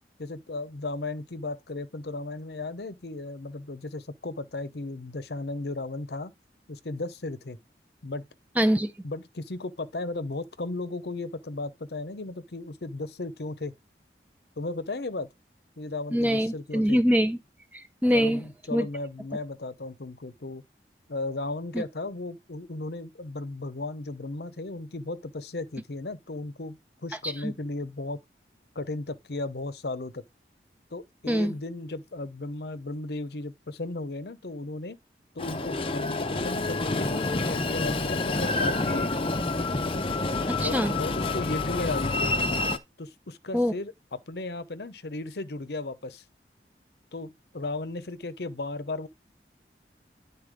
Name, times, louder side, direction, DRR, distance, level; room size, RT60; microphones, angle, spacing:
voice 1, 0.2-6.3 6.7-7.6 8.0-8.3 9.0-13.7 14.6-15.3 15.8-17.0 18.1-20.6 21.1-28.2 28.7-30.2 30.9-35.0 35.3-39.1 40.6-42.3 43.0-46.2 47.1-49.1, left 2 dB, 70° left, 0.8 m, -35 dB
voice 2, 8.6-8.9 16.1-17.4 17.7-18.4 18.7-18.9 21.7-21.8 27.2-27.5 31.3-31.5 40.5-41.0 43.5-43.7, equal, 10° right, 0.6 m, -24 dB
Train, 35.4-42.8, left 2 dB, 30° left, 0.7 m, -28 dB
10.0 x 4.2 x 5.1 m
head